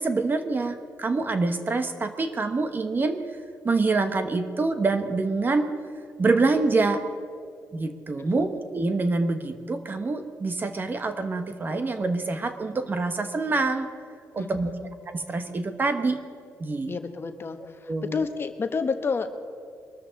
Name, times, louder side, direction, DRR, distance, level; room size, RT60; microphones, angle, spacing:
voice 1, 0.0-3.2 3.6-5.7 6.2-7.0 7.7-13.9 14.3-14.7 15.1-16.2 16.6-17.0 17.9-18.2, right 3 dB, 30° right, 8 dB, 1.2 m, -26 dB
voice 2, 14.4-14.8 16.9-17.6 18.1-19.3, left 4 dB, 40° left, 7 dB, 1.1 m, -30 dB
23.0 x 13.5 x 4.0 m, 2.4 s
cardioid pair, 100°, 6 cm